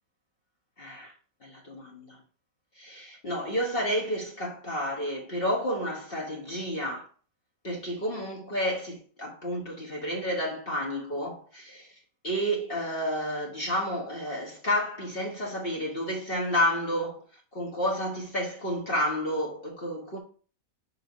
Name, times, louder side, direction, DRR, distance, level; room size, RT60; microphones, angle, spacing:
voice 1, 0.8-1.1 1.4-2.2 2.8-7.1 7.6-11.9 12.2-17.2 17.5-20.2, equal, 35° left, 1.3 m, -30 dB
5.7 x 4.7 x 5.3 m
omnidirectional pair, 1.8 m